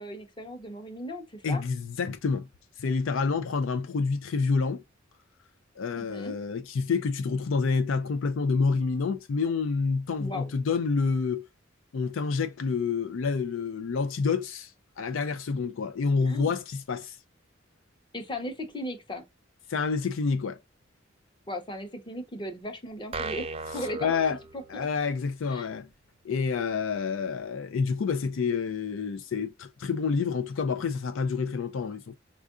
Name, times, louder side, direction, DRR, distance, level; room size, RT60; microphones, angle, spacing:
voice 1, 0.0-1.6 6.0-6.3 10.2-10.5 16.3-16.5 18.1-19.2 21.5-23.5 23.7-24.1 24.5-24.9 25.5-25.7, left 1 dB, 25° left, 0.8 m, -37 dB
voice 2, 1.4-2.5 2.8-4.8 5.8-11.5 11.9-14.7 15.0-17.2 19.7-20.6 24.0-24.4 24.7-25.9 26.2-32.1, left 5 dB, 70° left, 0.4 m, -28 dB
sound 1, 23.1-25.1, right 3 dB, 30° right, 0.4 m, -36 dB
4.4 x 2.4 x 2.4 m
head